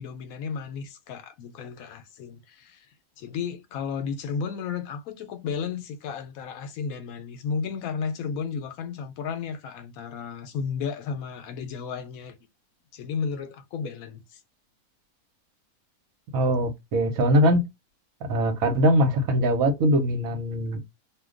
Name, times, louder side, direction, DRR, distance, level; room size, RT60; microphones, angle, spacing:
voice 1, 0.0-2.9 3.2-12.4 12.9-14.4, left 6 dB, 75° left, 1.0 m, -33 dB
voice 2, 16.3-17.6 18.3-20.8, equal, 70° right, 1.2 m, -22 dB
2.5 x 2.2 x 3.6 m
omnidirectional pair, 1.6 m